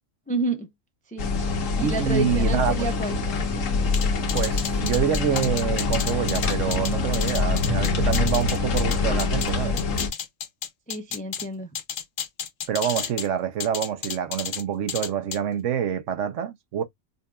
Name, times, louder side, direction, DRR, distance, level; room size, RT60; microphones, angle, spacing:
voice 1, 0.3-0.7 1.1-1.3 1.7-3.2 10.9-11.7, right 2 dB, 10° left, 0.3 m, -29 dB
sound 1, 1.2-10.1, left 4 dB, 70° left, 1.3 m, -25 dB
voice 2, 1.8-2.9 4.3-9.8 12.7-16.8, right 9 dB, 70° right, 1.0 m, -26 dB
sound 2, 3.9-9.5 9.8-11.4 11.7-13.3 13.6-14.6 14.9-15.4, left 8 dB, 55° left, 0.6 m, -31 dB
5.2 x 2.5 x 2.2 m
omnidirectional pair, 1.4 m